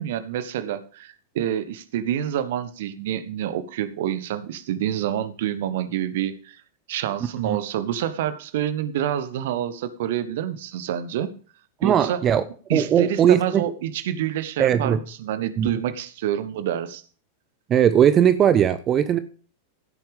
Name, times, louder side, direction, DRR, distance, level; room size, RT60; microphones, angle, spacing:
voice 1, 0.0-6.6 6.9-11.4 11.8-12.2 12.7-17.0, right 10 dB, 55° right, 1.3 m, -27 dB
voice 2, 11.8-12.4 12.7-13.6 14.6-15.0 15.6-15.7 17.7-19.2, right 9 dB, 30° right, 0.9 m, -19 dB
16.0 x 9.1 x 3.5 m
figure-of-eight pair, 90°, 0 cm